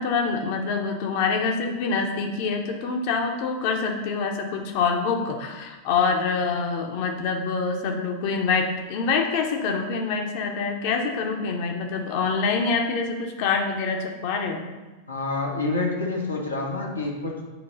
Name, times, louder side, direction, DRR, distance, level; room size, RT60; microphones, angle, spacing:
voice 1, 0.0-14.7, left 5 dB, 45° left, 3 dB, 1.0 m, -25 dB
voice 2, 15.1-17.5, left 3 dB, 85° left, -3 dB, 1.2 m, -28 dB
8.8 x 3.1 x 5.3 m, 1.2 s
figure-of-eight pair, 90°, 0 cm